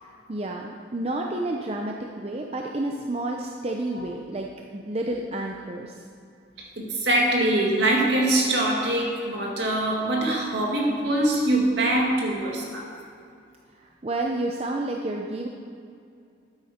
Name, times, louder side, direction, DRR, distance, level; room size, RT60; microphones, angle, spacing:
voice 1, 0.0-6.0 13.8-15.5, right 2 dB, 30° right, 0 dB, 0.6 m, -30 dB
voice 2, 6.8-12.9, right 1 dB, 65° right, -1 dB, 2.0 m, -23 dB
12.5 x 8.8 x 4.3 m, 2.4 s
head